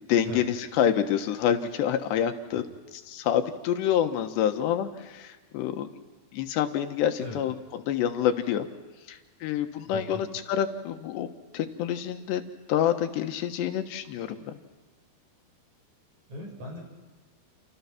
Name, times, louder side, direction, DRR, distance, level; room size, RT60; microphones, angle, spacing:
voice 1, 0.0-2.6 3.1-5.3 5.5-5.9 6.3-8.7 9.1-11.3 11.5-12.4 12.7-14.6, left 9 dB, 90° left, 7 dB, 3.5 m, -27 dB
voice 2, 9.9-10.2 16.3-16.8, left 1 dB, 45° right, 1 dB, 8.0 m, -38 dB
29.5 x 28.5 x 6.0 m, 1.3 s
omnidirectional pair, 4.8 m